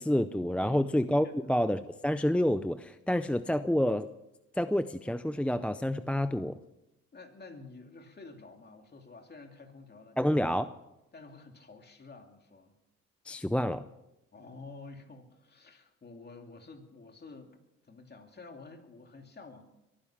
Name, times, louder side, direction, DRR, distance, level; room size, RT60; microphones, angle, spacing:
voice 1, 0.0-4.1 4.6-6.6 10.2-10.7 13.3-13.9, equal, 5° left, 12 dB, 0.4 m, -28 dB
voice 2, 7.1-10.4 11.1-12.8 14.3-17.6 17.8-19.6, left 3 dB, 35° left, 4 dB, 2.6 m, -50 dB
23.0 x 10.0 x 5.8 m, 0.92 s
cardioid pair, 90°, 30 cm